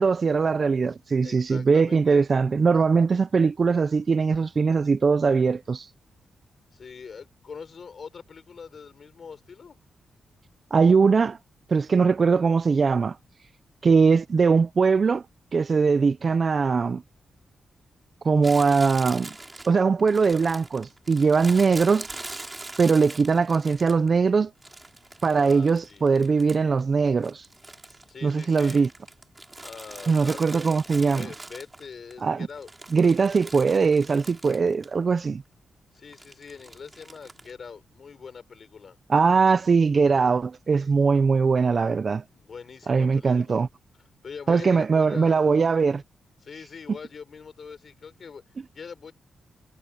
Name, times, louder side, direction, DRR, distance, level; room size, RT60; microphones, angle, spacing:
voice 1, 0.0-5.9 10.7-11.4 11.7-13.2 13.8-15.2 15.5-17.0 18.2-19.3 19.7-22.1 22.8-24.5 25.2-27.4 28.2-28.9 30.1-31.3 32.2-32.5 32.9-35.4 39.1-42.2 42.9-43.7 44.5-46.0, right 5 dB, 35° right, 0.4 m, -21 dB
voice 2, 1.2-2.2 6.7-9.8 25.3-26.1 28.1-28.8 29.6-30.7 31.0-32.7 35.9-39.0 42.3-43.6 44.2-45.5 46.4-49.1, left 6 dB, 40° left, 5.7 m, -43 dB
Crumpling crinkling, 18.4-24.2 24.6-26.8 27.1-32.1 32.5-34.9 35.2-35.3 36.1-37.5, right 2 dB, 15° right, 5.7 m, -42 dB
wide cardioid pair, 180°, 0 cm